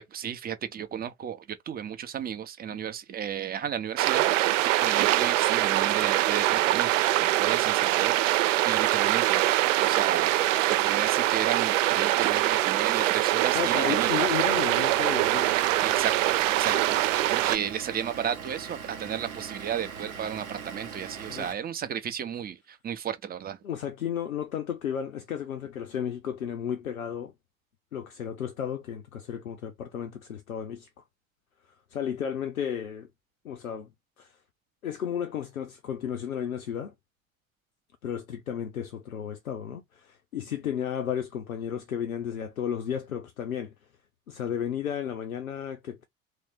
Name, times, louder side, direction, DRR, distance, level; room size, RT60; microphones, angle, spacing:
voice 1, 0.0-4.5 4.8-8.2 8.6-9.4 9.8-10.3 10.7-14.2 15.8-16.1 16.6-23.6, right 9 dB, 25° right, 0.6 m, -33 dB
sound 1, 4.0-17.6, right 15 dB, 65° right, 0.5 m, -24 dB
voice 2, 13.5-15.7 16.7-16.9 21.3-21.5 23.6-27.3 27.9-31.0 31.9-33.1 33.4-33.9 34.2-34.4 34.8-36.9 38.0-43.7 44.3-46.1, left 9 dB, 90° left, 0.5 m, -33 dB
Vehicle / Engine, 13.5-21.5, right 6 dB, 85° right, 1.0 m, -40 dB
3.2 x 2.6 x 3.4 m
figure-of-eight pair, 70°, 41 cm